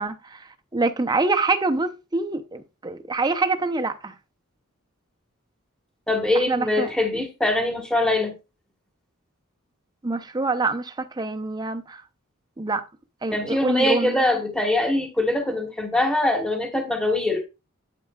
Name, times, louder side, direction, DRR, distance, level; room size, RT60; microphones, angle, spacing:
voice 1, 0.0-4.1 6.3-6.9 10.0-12.0 12.6-12.8 13.2-14.3, right 3 dB, 20° right, 0.6 m, -25 dB
voice 2, 6.1-8.3 13.3-17.5, left 1 dB, 5° left, 1.3 m, -23 dB
8.4 x 8.3 x 2.3 m
head